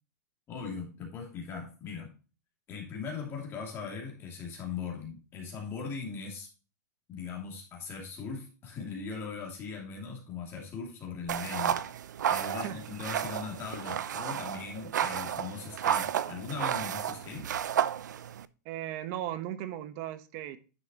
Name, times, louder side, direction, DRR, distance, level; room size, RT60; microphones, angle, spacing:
voice 1, 0.5-2.1 2.7-6.5 7.1-11.8 12.3-17.5, left 5 dB, 25° left, 0 dB, 2.5 m, -39 dB
Brushing Hair, 11.3-18.5, right 9 dB, 90° right, 0.5 m, -32 dB
voice 2, 12.5-12.8 18.6-20.6, right 12 dB, 40° right, 12 dB, 1.1 m, -37 dB
9.7 x 5.8 x 2.9 m, 0.34 s
hypercardioid pair, 145°, 9 cm